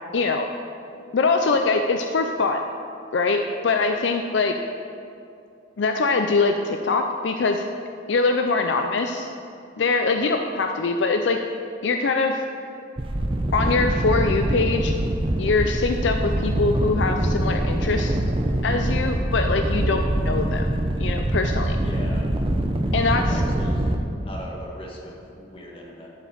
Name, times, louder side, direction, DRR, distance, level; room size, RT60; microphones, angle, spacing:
voice 1, 0.1-0.5 1.1-2.6 3.1-4.5 5.8-7.6 8.1-9.3 9.8-11.4 11.8-12.4 13.5-14.9 15.4-18.2 18.6-20.7 21.0-21.8 22.9-23.4, left 3 dB, 70° left, 5 dB, 0.5 m, -23 dB
sound 1, 13.0-24.0, right 1 dB, 30° right, 0.7 m, -24 dB
voice 2, 21.8-22.3 23.2-23.9 24.2-26.1, equal, 30° left, -3 dB, 1.7 m, -39 dB
11.5 x 5.1 x 7.0 m, 2.5 s
head